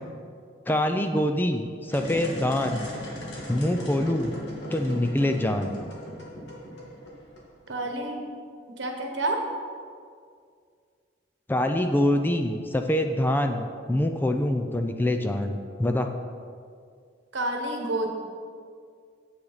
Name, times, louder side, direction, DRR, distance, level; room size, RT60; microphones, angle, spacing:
voice 1, 0.7-2.9 3.5-4.3 4.7-5.8 11.5-16.1, left 1 dB, 10° left, 6 dB, 0.4 m, -25 dB
sound 1, 1.8-7.7, equal, 65° left, 1.8 m, -38 dB
voice 2, 7.7-8.3 8.8-9.4 17.3-18.1, right 2 dB, 75° right, 3 dB, 1.2 m, -29 dB
8.7 x 8.0 x 4.0 m, 2.2 s
head